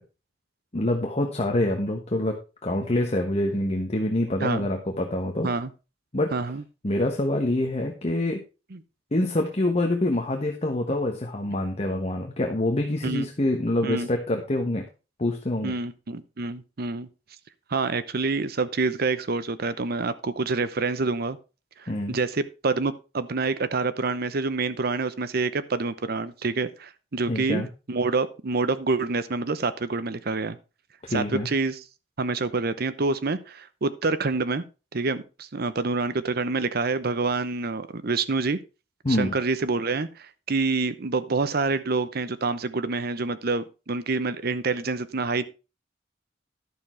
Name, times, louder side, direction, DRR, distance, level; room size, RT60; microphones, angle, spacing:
voice 1, 0.7-5.5 6.1-6.3 6.8-8.4 9.1-14.8 15.2-15.7 21.9-22.2 27.3-27.7 31.0-31.5 39.0-39.4, left 1 dB, 35° left, 3 dB, 1.2 m, -26 dB
voice 2, 6.3-6.6 8.7-8.8 13.0-13.3 13.8-14.1 15.6-17.1 17.7-21.4 21.8-30.6 31.1-31.8 32.2-34.6 34.9-38.6 39.1-45.4, right 3 dB, 55° right, 14 dB, 0.8 m, -27 dB
11.5 x 6.9 x 4.4 m, 0.31 s
head